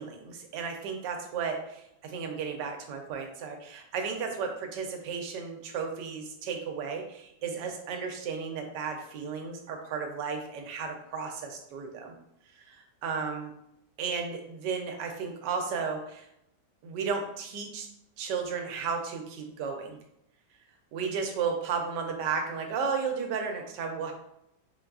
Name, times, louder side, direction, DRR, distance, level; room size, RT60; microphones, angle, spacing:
voice 1, 0.0-12.1 13.0-13.5 14.0-16.3 16.8-17.9 18.2-20.0 20.9-24.1, right 5 dB, 80° right, 3 dB, 1.2 m, -34 dB
4.1 x 2.3 x 2.3 m, 0.78 s
omnidirectional pair, 1.9 m